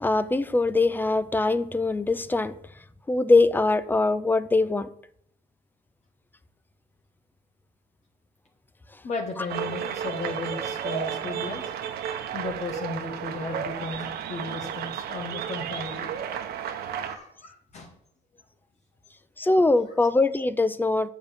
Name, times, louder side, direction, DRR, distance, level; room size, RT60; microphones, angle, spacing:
voice 1, 0.0-2.6 3.1-4.9 19.4-21.1, left 2 dB, 10° left, 0.4 m, -22 dB
voice 2, 9.0-11.7 12.3-16.2 17.0-17.9, left 3 dB, 40° left, 1.3 m, -35 dB
sound 1, 9.5-17.2, right 9 dB, 65° right, 0.9 m, -32 dB
6.9 x 5.2 x 6.9 m
cardioid pair, 110°, 17 cm